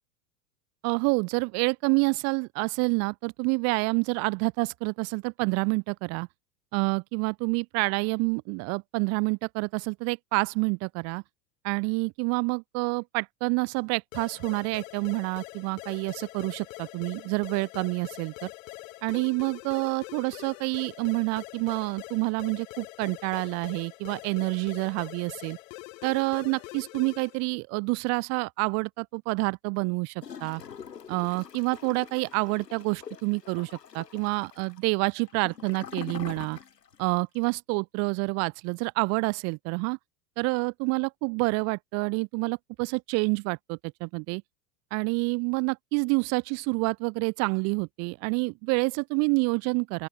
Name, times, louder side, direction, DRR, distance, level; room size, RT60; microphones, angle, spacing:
voice 1, 0.8-6.3 6.7-11.2 11.6-18.5 19.0-25.6 26.0-30.6 31.1-36.6 37.0-40.0 40.4-44.4 44.9-50.1, right 33 dB, 35° right, 0.6 m, -28 dB
sound 1, 14.1-27.5, left 24 dB, 55° left, 4.4 m, -44 dB
Gurgling / Toilet flush, 30.2-37.0 37.3-37.4, left 7 dB, 80° left, 2.6 m, -44 dB
open air
figure-of-eight pair, 90°, 48 cm